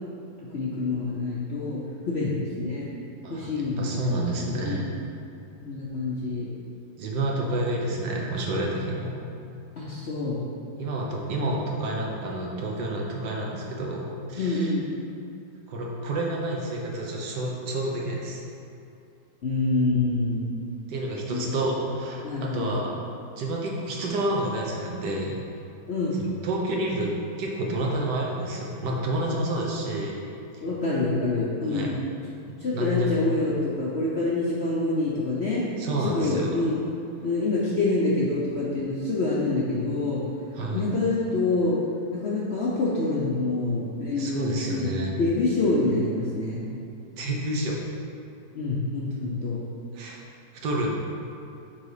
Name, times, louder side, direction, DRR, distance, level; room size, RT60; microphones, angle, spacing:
voice 1, 0.5-1.8 2.1-2.9 3.3-4.8 5.6-6.5 9.8-10.4 14.4-14.9 19.4-20.5 21.3-21.6 22.2-22.7 25.9-26.2 30.6-31.9 32.6-35.6 36.0-36.8 37.2-40.2 40.7-41.8 42.1-44.9 45.2-46.6 48.5-49.6, left 2 dB, 55° left, -6 dB, 0.7 m, -26 dB
voice 2, 3.2-4.9 7.0-9.1 10.8-14.7 15.7-18.4 20.9-22.9 23.4-25.4 26.4-27.1 27.4-30.2 31.7-31.9 32.7-33.2 35.8-36.5 40.5-40.9 44.1-45.1 47.1-47.8 49.9-50.2 50.5-51.0, right 1 dB, 70° right, -2 dB, 1.5 m, -29 dB
5.9 x 3.9 x 4.9 m, 2.6 s
omnidirectional pair, 1.9 m